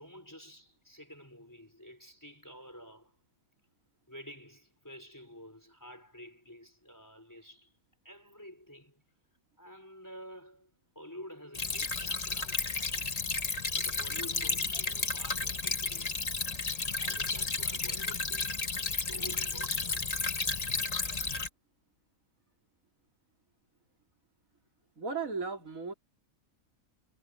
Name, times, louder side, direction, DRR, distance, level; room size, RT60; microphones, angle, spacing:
voice 1, 0.0-3.2 4.1-7.7 8.0-9.0 9.6-13.0 13.7-16.4 16.9-18.6 18.9-20.1, equal, 15° left, 4.2 m, -50 dB
Stream / Trickle dribble, 11.5-21.5, left 4 dB, 30° left, 1.1 m, -33 dB
voice 2, 25.0-25.9, right 4 dB, 70° right, 3.6 m, -36 dB
omnidirectional pair, 1.5 m